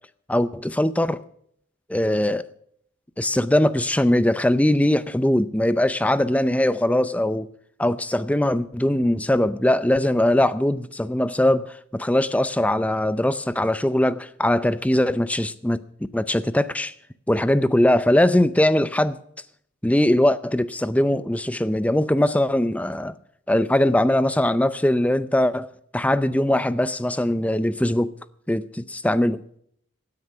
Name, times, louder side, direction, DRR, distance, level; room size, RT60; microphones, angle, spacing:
voice 1, 0.3-1.2 1.9-2.4 3.2-7.5 7.8-15.8 16.1-16.9 17.3-19.2 19.8-23.1 23.5-28.1 28.5-29.4, left 1 dB, 5° left, 0.5 m, -21 dB
17.0 x 9.7 x 5.6 m
head